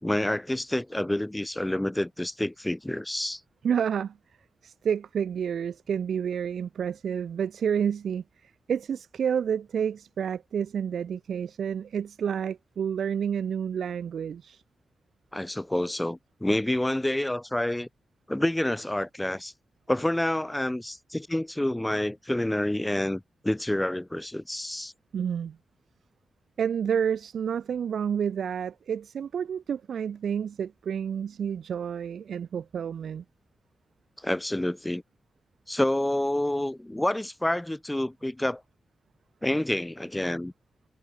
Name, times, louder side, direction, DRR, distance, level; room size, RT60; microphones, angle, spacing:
voice 1, 0.0-3.4 15.3-17.9 18.3-19.5 19.9-24.9 34.2-35.0 35.7-38.6 39.4-40.5, left 1 dB, 10° left, 3.2 m, -28 dB
voice 2, 3.6-4.2 4.6-14.6 25.1-25.6 26.6-33.2, right 8 dB, 80° right, 3.6 m, -29 dB
wide cardioid pair, 135°, 0 cm